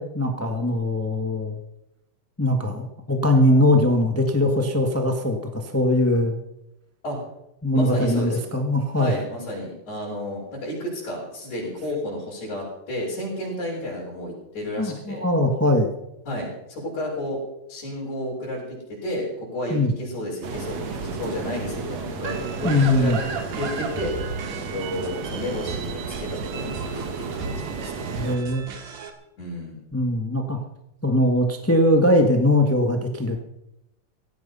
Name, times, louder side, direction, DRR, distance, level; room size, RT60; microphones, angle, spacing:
voice 1, 0.0-1.6 2.4-6.4 7.6-9.2 14.8-15.9 19.7-19.9 22.6-23.2 28.1-28.6 29.9-30.6 31.0-33.4, left 1 dB, 20° left, 5 dB, 0.3 m, -21 dB
voice 2, 7.7-8.4 9.0-15.2 16.3-17.4 17.7-23.2 23.5-24.1 24.6-28.1 29.4-29.8, left 1 dB, 65° left, -6 dB, 6.7 m, -32 dB
sound 1, 20.4-28.4, right 4 dB, 55° right, 2.7 m, -33 dB
sound 2, 22.2-29.1, right 5 dB, 85° right, 3.5 m, -35 dB
17.5 x 14.5 x 5.6 m, 0.86 s
omnidirectional pair, 3.7 m